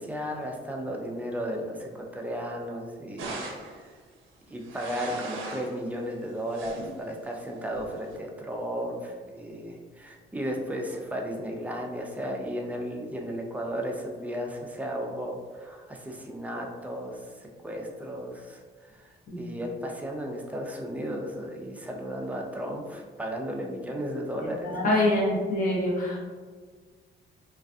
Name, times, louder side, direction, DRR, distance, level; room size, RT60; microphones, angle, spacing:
voice 1, 0.0-3.4 3.7-4.0 4.5-19.1 19.4-24.9, equal, 5° right, 1 dB, 0.4 m, -34 dB
sound 1, 3.2-3.8 4.5-5.8 6.3-7.0 7.7-8.2, right 2 dB, 90° right, 0.5 m, -39 dB
voice 2, 24.4-26.2, left 1 dB, 45° left, -5 dB, 0.9 m, -25 dB
2.4 x 2.4 x 2.3 m, 1.5 s
cardioid pair, 90°, 20 cm